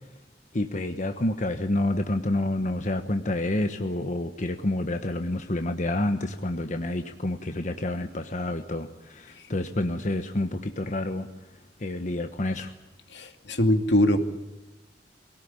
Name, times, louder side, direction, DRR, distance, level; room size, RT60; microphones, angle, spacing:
voice 1, 0.5-11.3 11.8-12.7, left 1 dB, 45° left, 7 dB, 1.2 m, -28 dB
voice 2, 13.1-14.2, left 1 dB, 80° left, 6 dB, 2.4 m, -22 dB
23.5 x 17.5 x 10.0 m, 1.1 s
head